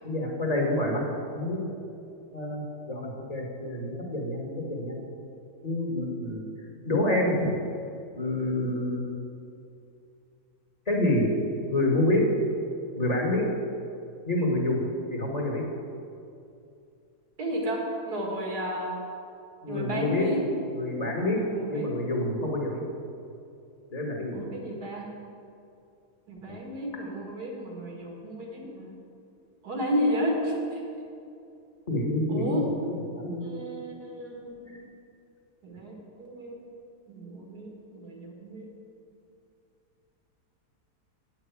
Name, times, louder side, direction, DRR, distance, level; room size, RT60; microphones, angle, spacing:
voice 1, 0.0-1.0 1.3-1.7 2.3-5.0 5.6-6.4 6.8-7.5 8.1-9.1 10.9-11.2 11.7-12.2 13.0-13.4 14.3-14.8 15.1-15.6 19.6-20.3 20.7-21.4 21.7-22.8 23.9-24.4 26.4-26.6 31.9-33.4 34.7-34.8, left 1 dB, 25° left, -1 dB, 1.5 m, -28 dB
voice 2, 17.4-18.9 19.7-20.4 21.3-21.9 24.3-25.1 26.3-28.9 29.6-30.6 32.3-32.7 33.4-34.8 35.6-35.9 36.2-36.6 37.1-38.7, equal, 70° right, -1 dB, 2.4 m, -32 dB
8.9 x 5.9 x 8.1 m, 2.6 s
omnidirectional pair, 1.7 m